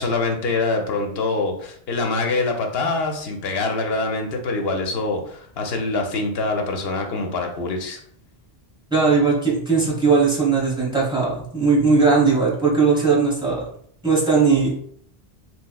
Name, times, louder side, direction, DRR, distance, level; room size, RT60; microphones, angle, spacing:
voice 1, 0.0-8.0, left 3 dB, 70° left, 3 dB, 0.9 m, -24 dB
voice 2, 8.9-13.6 14.0-14.7, right 4 dB, 5° right, -5 dB, 1.1 m, -18 dB
3.2 x 3.0 x 2.3 m, 0.63 s
omnidirectional pair, 1.1 m